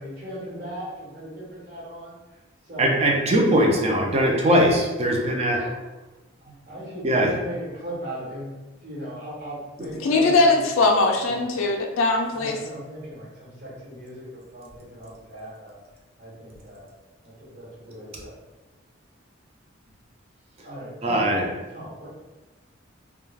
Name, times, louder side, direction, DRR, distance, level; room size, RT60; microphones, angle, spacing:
voice 1, 0.0-2.2 2.6-3.2 6.7-8.5 8.8-10.6 11.2-11.3 12.3-15.8 16.2-16.8 17.2-18.3 20.6-21.3 21.7-22.1, right 1 dB, 50° right, -8 dB, 1.1 m, -37 dB
voice 2, 2.8-5.7 7.0-7.3 21.0-21.4, equal, 30° right, 0 dB, 0.4 m, -20 dB
voice 3, 10.0-12.6, left 3 dB, 85° left, 1 dB, 0.3 m, -20 dB
2.3 x 2.3 x 3.2 m, 1.1 s
head